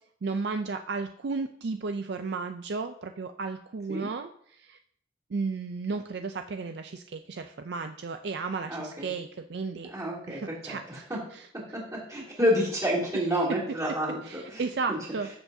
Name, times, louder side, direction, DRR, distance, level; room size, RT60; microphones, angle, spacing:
voice 1, 0.2-4.8 5.3-9.9 10.3-11.5 14.2-15.3, right 4 dB, 55° right, 7 dB, 0.4 m, -34 dB
voice 2, 8.7-9.1 9.9-11.2 12.1-15.0, equal, 15° right, -5 dB, 2.7 m, -29 dB
14.0 x 7.1 x 2.7 m, 0.65 s
head